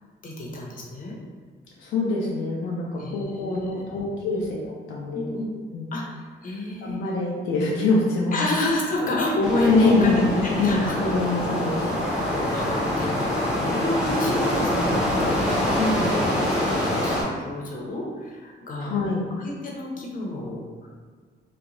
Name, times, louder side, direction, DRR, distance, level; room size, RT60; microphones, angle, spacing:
voice 1, 0.2-1.2 3.0-3.9 4.3-4.5 5.1-5.5 5.9-7.0 8.3-10.9 11.6-11.8 12.5-20.9, left 1 dB, 45° left, -2 dB, 0.7 m, -30 dB
voice 2, 1.8-5.3 5.7-5.9 6.5-6.6 6.8-8.4 9.6-11.9 15.8-15.9 18.8-19.2, left 3 dB, 80° left, -3 dB, 0.4 m, -25 dB
sound 1, 9.4-17.2, left 1 dB, 5° right, 0.8 m, -25 dB
2.9 x 2.1 x 2.5 m, 1.6 s
cardioid pair, 90°, 20 cm